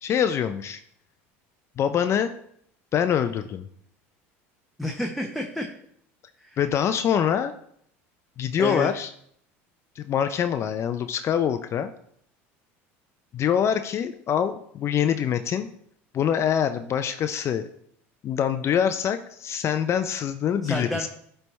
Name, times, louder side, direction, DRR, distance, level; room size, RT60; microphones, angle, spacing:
voice 1, 0.0-0.8 1.8-2.3 2.9-3.7 6.6-7.5 8.4-9.1 10.0-11.9 13.3-15.7 16.1-17.7 18.2-21.1, left 8 dB, 40° left, 9 dB, 0.4 m, -25 dB
voice 2, 4.8-5.7 6.4-6.6 8.6-8.9 20.6-21.1, equal, ahead, 1 dB, 0.8 m, -29 dB
10.0 x 3.4 x 4.1 m, 0.67 s
supercardioid pair, 90°, 7 cm